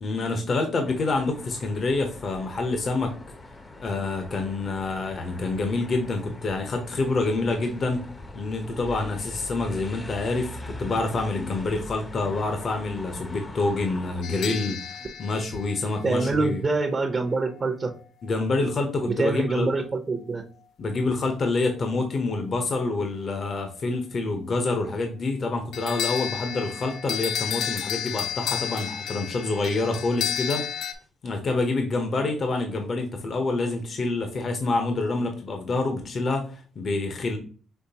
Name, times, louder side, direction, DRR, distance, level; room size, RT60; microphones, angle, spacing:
voice 1, 0.0-3.1 3.8-8.0 8.3-16.6 18.2-19.7 20.8-30.7 31.2-37.4, left 3 dB, 50° left, 5 dB, 0.9 m, -27 dB
sound 1, 0.8-14.2, left 2 dB, 25° left, 0.7 m, -42 dB
sound 2, 14.2-16.5 25.7-30.9, left 8 dB, 75° left, 0.6 m, -32 dB
voice 2, 16.0-17.9 19.1-20.4, right 3 dB, 40° right, 3 dB, 0.7 m, -25 dB
5.7 x 3.1 x 2.9 m, 0.40 s
cardioid pair, 90°, 0 cm